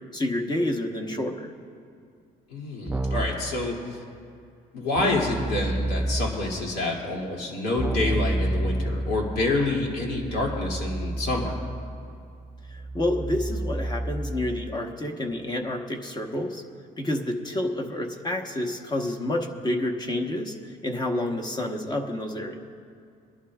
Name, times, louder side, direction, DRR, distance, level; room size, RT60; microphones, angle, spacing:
voice 1, 0.1-1.5 12.7-16.6 17.0-22.6, left 1 dB, 25° left, 2 dB, 1.2 m, -29 dB
voice 2, 2.5-4.0 4.7-11.5, left 2 dB, 75° left, -2 dB, 2.6 m, -27 dB
Keyboard (musical), 2.9-3.5 5.0-6.5 7.8-14.8, right 1 dB, 10° right, 0.4 m, -30 dB
22.5 x 11.5 x 2.4 m, 2.3 s
cardioid pair, 110°, 17 cm